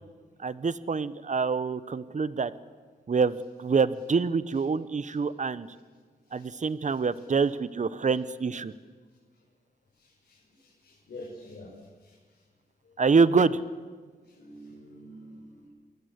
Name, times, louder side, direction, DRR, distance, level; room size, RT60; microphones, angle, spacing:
voice 1, 0.4-2.5 3.1-5.7 6.3-8.7 13.0-13.6, right 5 dB, 45° right, 17 dB, 1.0 m, -26 dB
voice 2, 6.3-7.2 8.1-8.2 10.0-11.7 12.0-12.1 12.8-12.9 14.2-15.7, left 1 dB, 75° left, -4 dB, 6.4 m, -48 dB
28.5 x 20.5 x 8.2 m, 1.5 s
cardioid pair, 75°, 17 cm